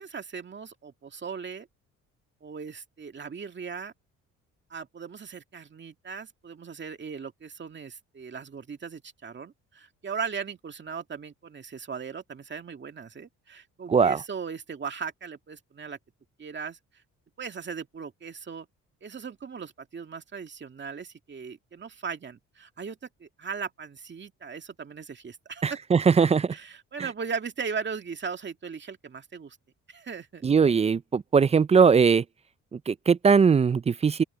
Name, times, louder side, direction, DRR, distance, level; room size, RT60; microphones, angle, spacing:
voice 1, 0.0-1.7 2.4-3.9 4.7-16.0 16.4-16.8 17.4-18.7 19.0-25.8 26.5-29.6 29.9-30.4, right 6 dB, 40° right, 2.2 m, -38 dB
voice 2, 13.9-14.2 25.6-26.6 30.4-32.2 32.7-34.2, right 6 dB, 20° right, 0.4 m, -20 dB
open air
cardioid pair, 90°, 30 cm